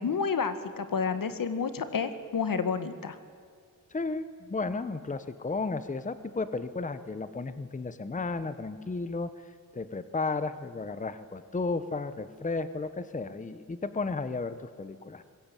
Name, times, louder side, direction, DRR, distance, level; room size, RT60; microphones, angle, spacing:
voice 1, 0.0-3.2, left 5 dB, 70° left, 11 dB, 2.0 m, -30 dB
voice 2, 3.9-9.4 9.7-15.2, left 3 dB, 20° left, 13 dB, 1.0 m, -33 dB
25.0 x 21.5 x 9.0 m, 2.1 s
wide cardioid pair, 120°, 35 cm